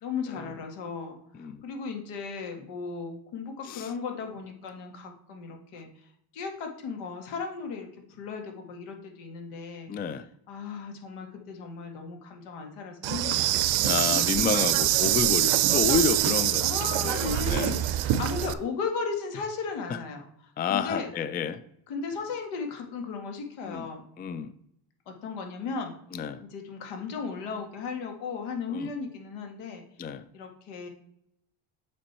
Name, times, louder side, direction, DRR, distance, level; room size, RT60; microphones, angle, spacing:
voice 1, 0.0-9.9 10.5-14.2 16.6-21.1 21.9-24.1 25.1-25.9 26.4-29.8 30.3-30.9, left 5 dB, 85° left, 3 dB, 2.0 m, -36 dB
voice 2, 9.9-10.2 13.8-16.7 17.0-17.8 20.6-21.6 23.6-23.9 24.2-24.5 26.1-26.4 28.7-28.9 30.0-30.2, left 6 dB, 20° left, 12 dB, 0.3 m, -29 dB
Insect, 13.0-18.5, right 13 dB, 60° right, 0.7 m, -24 dB
7.5 x 5.3 x 4.3 m, 0.72 s
cardioid pair, 115°, 50 cm